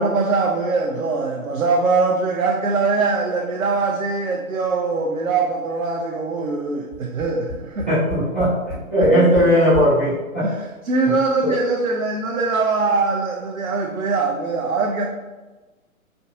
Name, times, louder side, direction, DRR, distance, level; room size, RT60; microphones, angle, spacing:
voice 1, 0.0-8.0 9.0-9.3 10.4-15.0, right 4 dB, 70° right, 0 dB, 0.6 m, -22 dB
Tap, 6.9-10.0 10.8-10.9 11.2-11.3, left 1 dB, 10° left, 1.1 m, -31 dB
voice 2, 7.9-8.5 8.9-10.5 11.4-11.5, equal, 5° right, -19 dB, 0.5 m, -17 dB
4.3 x 2.7 x 2.5 m, 1.2 s
figure-of-eight pair, 125°, 42 cm